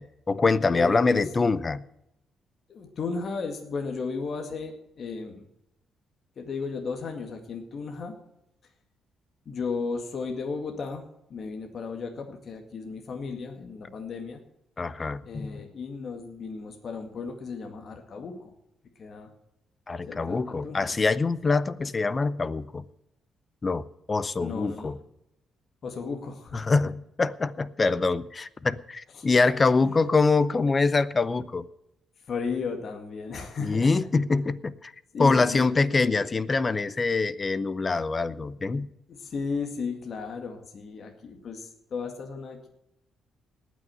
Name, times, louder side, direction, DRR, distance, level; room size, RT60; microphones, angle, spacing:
voice 1, 0.0-1.8 14.8-15.5 19.9-22.8 23.6-25.0 26.5-31.7 33.6-34.9 35.2-38.9, left 3 dB, 30° left, 17 dB, 0.7 m, -25 dB
voice 2, 0.6-1.3 2.7-5.4 6.4-8.2 9.5-14.4 15.3-18.5 19.0-19.3 20.1-20.9 24.4-25.0 25.8-26.6 29.1-29.3 29.8-30.1 32.3-34.1 35.1-36.2 39.1-42.7, left 4 dB, 50° left, 4 dB, 2.0 m, -35 dB
19.0 x 6.3 x 7.9 m, 0.81 s
cardioid pair, 90°, 0 cm